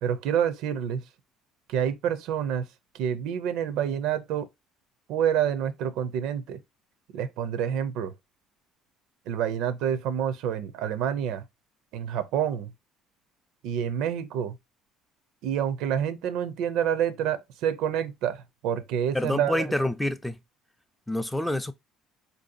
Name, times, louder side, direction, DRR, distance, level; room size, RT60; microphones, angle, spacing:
voice 1, 0.0-1.0 1.7-2.6 2.9-4.5 5.1-6.6 7.1-8.1 9.3-11.4 11.9-12.7 13.6-14.5 15.4-19.6, right 9 dB, 75° right, 0.4 m, -28 dB
voice 2, 19.1-20.4 21.1-21.7, left 1 dB, 5° left, 0.3 m, -27 dB
4.3 x 2.6 x 2.5 m
cardioid pair, 125°, 0 cm